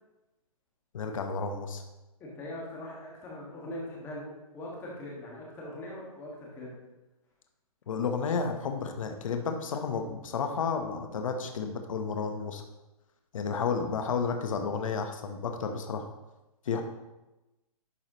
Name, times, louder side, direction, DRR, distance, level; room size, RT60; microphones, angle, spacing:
voice 1, 0.9-1.8 7.9-12.6 13.3-16.1 16.6-16.8, left 5 dB, 60° left, 5 dB, 1.0 m, -32 dB
voice 2, 2.2-6.8, left 1 dB, 15° left, -3 dB, 1.6 m, -41 dB
11.0 x 4.7 x 3.0 m, 1.0 s
hypercardioid pair, 160°, 19 cm